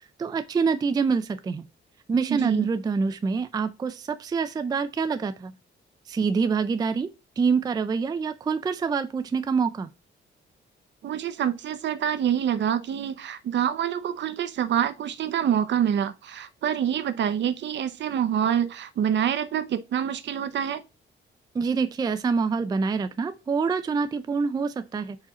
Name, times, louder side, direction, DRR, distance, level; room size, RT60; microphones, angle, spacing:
voice 1, 0.2-1.6 2.1-5.5 6.1-7.1 7.4-9.9 21.5-25.2, right 5 dB, 20° right, 0.3 m, -26 dB
voice 2, 2.3-2.7 11.0-20.8, right 9 dB, 65° right, 0.7 m, -26 dB
4.8 x 4.3 x 4.8 m
wide cardioid pair, 165°, 20 cm